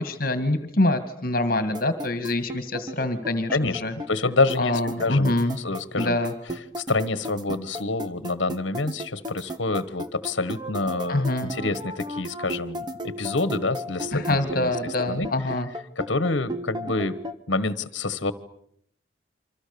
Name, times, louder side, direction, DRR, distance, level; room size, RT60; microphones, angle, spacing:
voice 1, 0.0-3.9 4.6-5.6 6.0-6.3 11.1-11.5 14.1-15.7, left 2 dB, 45° left, 10 dB, 2.2 m, -25 dB
sound 1, 1.7-17.3, equal, 20° right, 1.5 m, -34 dB
voice 2, 3.5-6.2 6.8-14.7 15.1-15.3 16.0-17.1 17.5-18.3, left 3 dB, 70° left, 15 dB, 1.4 m, -27 dB
28.5 x 25.5 x 7.0 m, 0.70 s
head